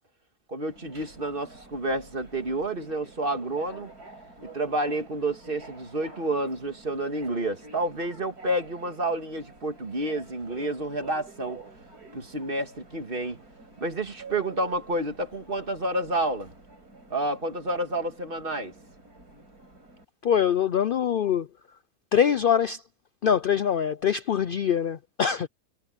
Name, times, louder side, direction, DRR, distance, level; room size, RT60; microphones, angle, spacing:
voice 1, 0.5-3.9 4.4-11.6 12.1-13.4 13.8-16.5 17.1-18.7, right 1 dB, 35° right, 2.2 m, -29 dB
Subway metro underground, 0.7-20.0, right 3 dB, 80° right, 6.7 m, -49 dB
voice 2, 20.2-21.5 22.1-22.8 23.2-25.5, left 8 dB, 80° left, 0.4 m, -23 dB
omnidirectional pair, 1.6 m